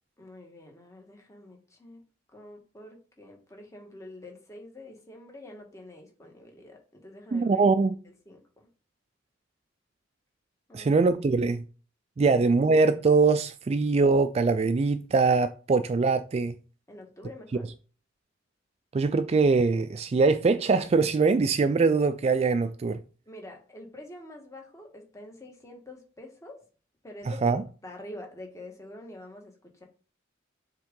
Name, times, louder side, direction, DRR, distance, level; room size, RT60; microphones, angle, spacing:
voice 1, 0.2-2.0 2.3-7.6 8.2-8.7 10.7-11.0 12.2-12.4 16.9-17.7 23.3-26.7 27.0-27.6 27.8-29.8, left 1 dB, 15° left, 1.5 m, -46 dB
voice 2, 7.3-7.9 10.7-11.6 12.2-16.6 18.9-23.0 27.4-27.6, right 4 dB, 35° right, 0.3 m, -22 dB
7.0 x 3.6 x 3.7 m
head